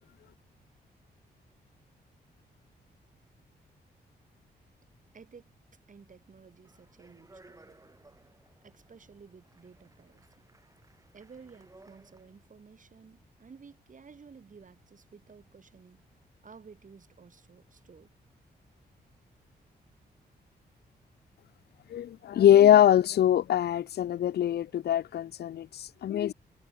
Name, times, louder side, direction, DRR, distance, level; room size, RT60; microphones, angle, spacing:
voice 1, 5.1-5.5 5.9-7.8 8.6-10.3 11.1-16.0 16.4-18.1, right 5 dB, 50° right, 7.4 m, -54 dB
Speech, 6.6-12.5, right 2 dB, 20° right, 6.4 m, -59 dB
voice 2, 21.9-26.3, left 11 dB, 70° left, 0.6 m, -23 dB
cardioid pair, 80°, 17 cm